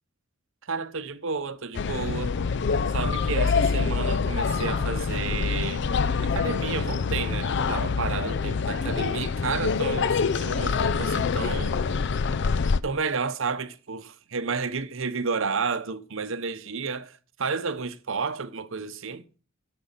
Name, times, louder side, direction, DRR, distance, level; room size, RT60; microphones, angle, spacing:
voice 1, 0.7-2.3 2.9-5.9 6.2-11.8 12.8-19.2, right 5 dB, 65° right, 0.9 m, -31 dB
sound 1, 1.7-12.8, left 5 dB, 55° left, 0.4 m, -26 dB
10.5 x 7.0 x 5.7 m
head